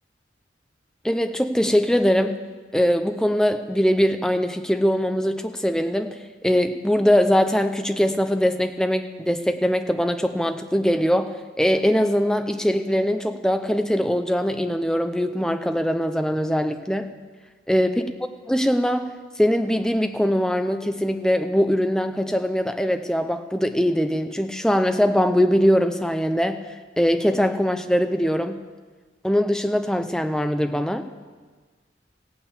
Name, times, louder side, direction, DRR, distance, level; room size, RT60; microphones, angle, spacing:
voice 1, 1.0-2.4 2.7-17.1 17.7-18.1 18.5-19.1 19.4-26.7 27.0-28.6 29.2-31.1, equal, 5° left, 7 dB, 0.6 m, -22 dB
15.5 x 8.9 x 8.3 m, 1.4 s
head